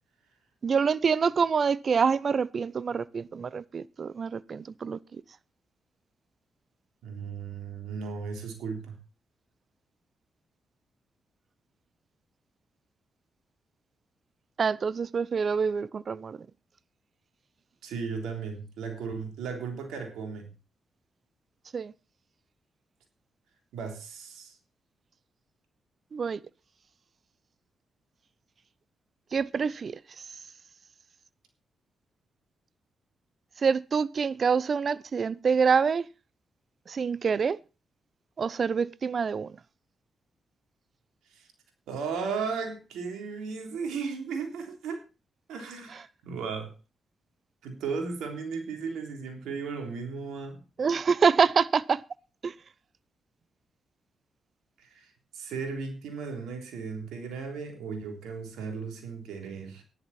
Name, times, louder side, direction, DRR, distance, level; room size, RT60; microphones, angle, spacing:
voice 1, 0.6-5.0 14.6-16.4 21.7-21.9 26.1-26.4 29.3-30.0 33.6-36.1 36.9-37.6 38.4-39.5 50.8-52.0 52.4-52.5, right 6 dB, 55° right, 0.7 m, -26 dB
voice 2, 7.0-9.0 17.8-20.5 23.7-24.5 41.3-41.5 41.9-45.0 45.5-46.7 47.6-50.6 54.8-59.8, right 5 dB, 80° right, 3.4 m, -36 dB
13.5 x 11.0 x 4.3 m
supercardioid pair, 45°, 0 cm